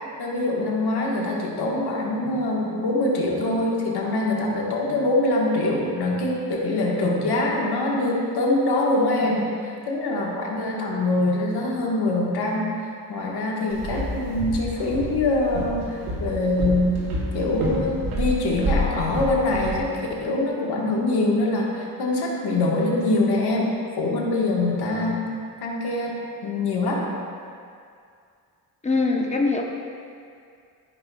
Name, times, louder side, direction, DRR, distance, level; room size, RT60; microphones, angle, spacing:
voice 1, 0.2-12.7 13.1-17.1 17.3-23.7 24.0-25.2 25.6-27.0, left 2 dB, 80° left, -3 dB, 1.5 m, -24 dB
Walk footsteps, 13.7-19.8, equal, 80° right, 1.4 m, -29 dB
voice 2, 28.8-29.6, left 3 dB, 20° left, 0 dB, 0.9 m, -22 dB
13.0 x 5.6 x 2.3 m, 2.3 s
cardioid pair, 95°, 39 cm